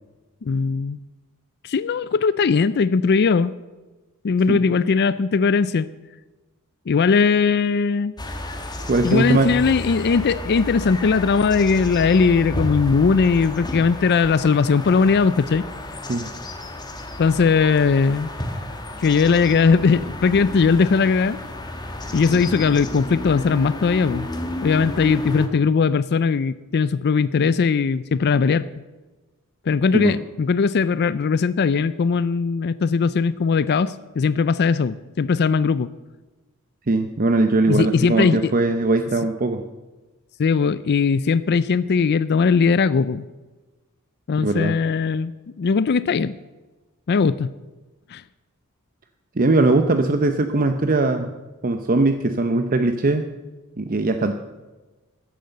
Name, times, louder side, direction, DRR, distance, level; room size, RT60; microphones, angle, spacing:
voice 1, 0.4-1.0 1.6-3.5 4.2-5.9 6.9-8.1 9.0-15.6 17.2-18.3 19.0-21.4 22.1-24.3 24.6-28.6 29.7-35.9 37.7-38.5 40.4-43.2 44.3-45.3 45.6-46.3 47.1-47.5 48.1-48.2, left 5 dB, 50° left, 16 dB, 0.4 m, -19 dB
sound 1, 8.2-25.5, left 1 dB, 20° left, 1.7 m, -32 dB
voice 2, 8.8-9.5 16.1-16.3 29.9-30.1 36.9-39.6 44.4-44.7 49.4-51.3 51.6-53.3 53.8-54.3, right 2 dB, 40° right, 7 dB, 0.7 m, -20 dB
13.5 x 10.5 x 7.8 m, 1.2 s
head